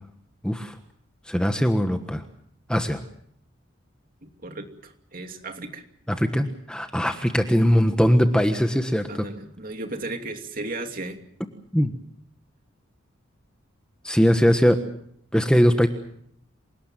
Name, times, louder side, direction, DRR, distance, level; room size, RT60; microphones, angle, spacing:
voice 1, 0.4-0.7 1.3-2.2 2.7-3.0 6.2-9.1 11.7-11.9 14.0-14.8 15.3-15.9, equal, 5° left, 6 dB, 1.4 m, -20 dB
voice 2, 4.2-5.8 9.1-11.2, right 2 dB, 45° right, 5 dB, 2.8 m, -35 dB
27.5 x 19.0 x 7.5 m, 0.67 s
head